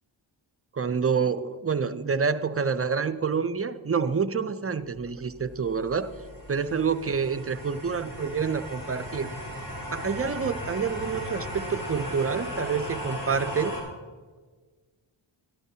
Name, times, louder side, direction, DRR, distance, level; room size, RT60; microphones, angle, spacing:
voice 1, 0.7-6.1 6.5-9.3 9.9-13.8, right 5 dB, 30° right, 12 dB, 0.4 m, -27 dB
sound 1, 5.0-13.8, equal, 50° left, 3.7 m, -37 dB
13.5 x 11.5 x 2.8 m, 1.4 s
wide cardioid pair, 65°, 47 cm